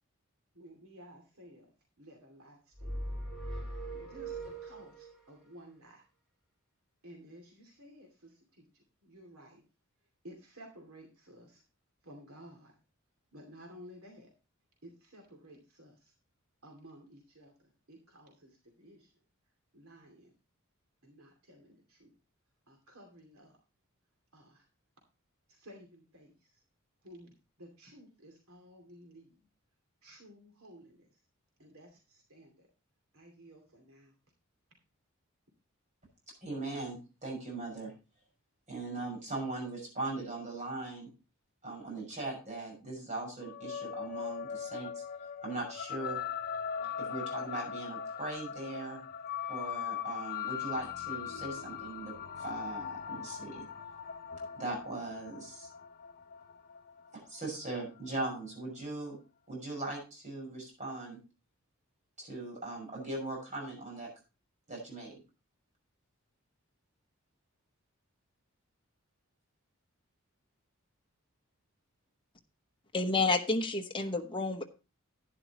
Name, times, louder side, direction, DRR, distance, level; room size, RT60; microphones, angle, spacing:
voice 1, 0.5-3.1 3.9-6.1 7.0-9.6 10.2-11.6 12.0-12.8 13.3-14.3 14.8-16.1 16.6-19.1 19.7-20.3 21.0-22.2 22.7-23.6 24.3-24.6 25.5-26.6 27.0-29.5 30.0-31.2 31.6-32.7 33.1-34.2, equal, 80° right, 2 dB, 2.5 m, -55 dB
sound 1, 2.8-5.2, right 1 dB, ahead, 4.7 m, -40 dB
voice 2, 36.4-37.9 38.7-41.1 41.6-45.0 45.4-46.2 47.0-49.0 49.5-52.1 52.4-53.7 54.6-55.7 57.1-59.2 59.5-61.2 62.2-64.1 64.7-65.2, right 2 dB, 35° right, -1 dB, 6.2 m, -39 dB
sound 2, 43.4-58.1, left 8 dB, 45° left, 0.5 m, -40 dB
voice 3, 72.9-74.6, left 3 dB, 25° left, 3 dB, 1.0 m, -30 dB
11.5 x 10.5 x 2.9 m, 0.31 s
head